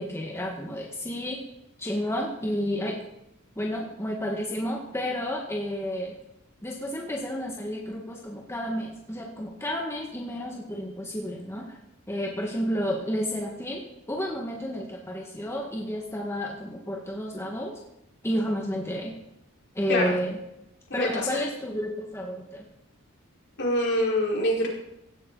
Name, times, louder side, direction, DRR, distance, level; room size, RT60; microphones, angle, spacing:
voice 1, 0.0-1.4 1.8-3.0 3.6-6.2 6.6-11.8 12.1-13.8 14.1-17.8 18.2-19.2 19.8-20.4 20.9-22.6, equal, 10° left, -1 dB, 1.7 m, -31 dB
voice 2, 23.6-24.7, left 1 dB, 55° left, -3 dB, 4.7 m, -24 dB
16.5 x 13.0 x 4.0 m, 0.83 s
head